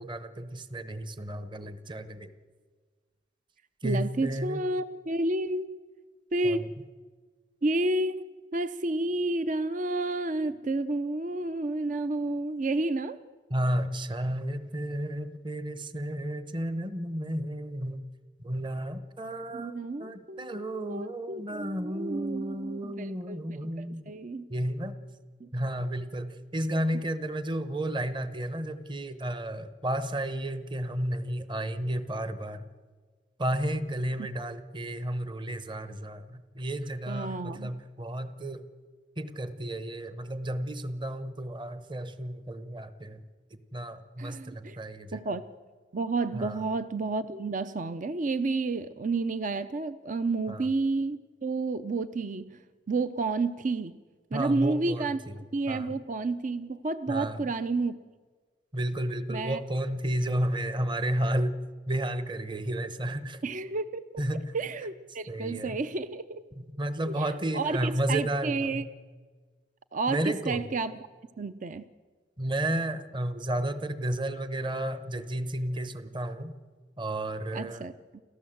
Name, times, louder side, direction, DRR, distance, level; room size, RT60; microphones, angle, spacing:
voice 1, 0.0-2.3 3.8-4.6 6.4-6.7 13.5-18.0 18.4-24.2 24.5-24.9 25.5-32.7 33.4-38.6 39.2-43.2 43.7-45.3 46.3-46.6 50.5-50.7 54.3-55.4 55.7-55.9 57.1-57.5 58.7-61.6 61.9-63.4 64.2-64.5 65.3-65.8 66.6-68.9 70.1-70.6 72.4-76.5 77.0-77.9, right 1 dB, 25° right, 12 dB, 1.0 m, -32 dB
voice 2, 3.8-5.7 6.3-6.7 7.6-8.2 8.5-13.2 19.5-23.4 23.8-24.5 25.4-25.5 37.1-37.7 44.2-44.8 45.1-45.4 45.9-52.5 52.9-54.0 54.3-55.2 55.5-58.0 59.3-59.6 63.4-64.0 64.5-66.4 67.1-68.8 69.9-70.9 71.4-71.8 77.5-78.2, right 3 dB, 45° right, 12 dB, 0.6 m, -30 dB
29.5 x 13.5 x 7.8 m, 1.5 s
head